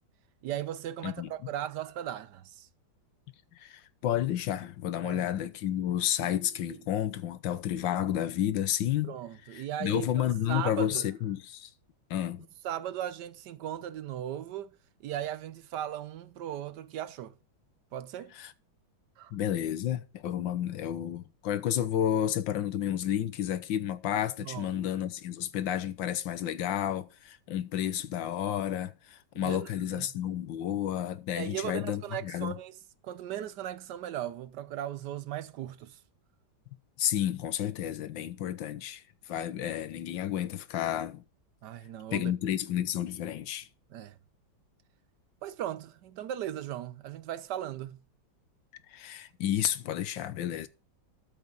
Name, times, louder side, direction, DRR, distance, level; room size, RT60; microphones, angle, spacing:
voice 1, 0.4-2.7 5.0-5.3 6.7-6.8 9.0-11.0 12.6-14.7 15.0-17.3 17.9-18.3 19.2-19.3 24.4-24.7 29.4-30.1 31.3-32.7 33.0-36.0 41.6-42.3 43.9-44.1 45.4-48.0, right 11 dB, 70° right, 1.2 m, -37 dB
voice 2, 3.6-9.2 9.5-11.7 12.1-12.5 18.3-18.5 19.3-32.6 37.0-41.2 42.1-43.7 48.9-50.7, left 11 dB, 85° left, 1.6 m, -31 dB
13.0 x 5.3 x 5.3 m
omnidirectional pair, 2.0 m